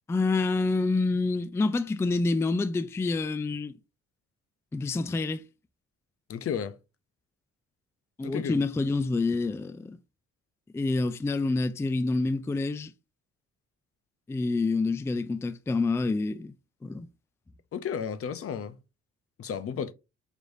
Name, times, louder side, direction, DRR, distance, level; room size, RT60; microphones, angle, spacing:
voice 1, 0.1-3.7 4.7-5.4 8.2-10.0 10.7-12.9 14.3-16.5 16.8-17.1, left 3 dB, 10° left, 0.3 m, -27 dB
voice 2, 6.3-6.8 8.2-8.5 17.7-18.8 19.4-19.9, left 7 dB, 50° left, 0.6 m, -33 dB
5.0 x 3.1 x 2.6 m
cardioid pair, 90°, 30 cm